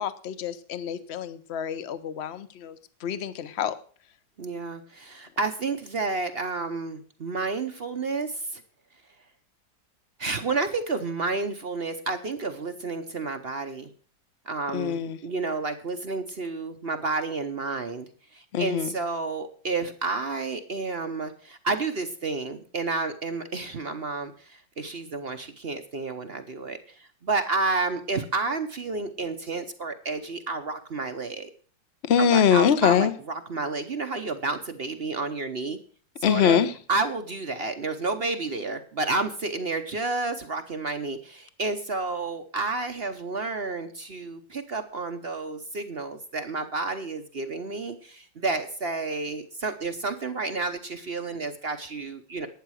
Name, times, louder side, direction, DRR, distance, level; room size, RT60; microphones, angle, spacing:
voice 1, 0.0-2.8 3.0-3.8 14.7-15.2 18.5-18.9 32.0-33.1 36.2-36.7, left 8 dB, 45° left, 13 dB, 0.9 m, -24 dB
voice 2, 4.4-8.6 10.2-13.9 14.4-31.5 32.2-35.8 36.3-36.6 36.9-52.5, right 3 dB, 45° right, 8 dB, 0.8 m, -30 dB
11.5 x 9.3 x 6.3 m, 0.43 s
omnidirectional pair, 2.0 m